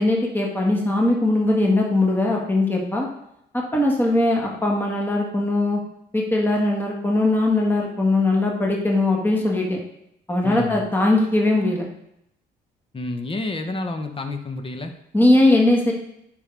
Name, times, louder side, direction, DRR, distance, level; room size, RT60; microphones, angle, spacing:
voice 1, 0.0-3.1 3.5-5.8 6.1-9.8 10.3-11.9 15.1-15.9, left 2 dB, 10° left, -1 dB, 1.6 m, -20 dB
voice 2, 10.4-10.9 12.9-14.9, left 2 dB, 25° left, 7 dB, 1.0 m, -29 dB
9.6 x 5.3 x 3.4 m, 0.78 s
cardioid pair, 90°, 20 cm